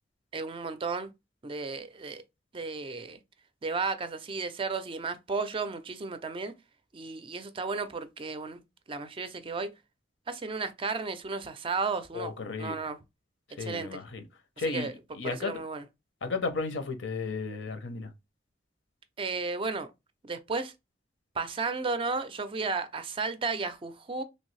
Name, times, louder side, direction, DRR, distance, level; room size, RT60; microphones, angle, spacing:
voice 1, 0.3-1.1 1.4-2.2 2.5-3.2 3.6-6.5 6.9-8.6 8.9-9.7 10.3-12.3 12.6-13.0 13.6-14.0 14.7-14.9 15.2-15.8 19.2-19.9 20.2-20.7 21.4-24.2, right 4 dB, 30° right, 0.4 m, -33 dB
voice 2, 12.1-12.8 13.6-14.2 14.6-15.6 16.2-18.1, left 4 dB, 85° left, 0.7 m, -34 dB
3.0 x 2.6 x 3.1 m
head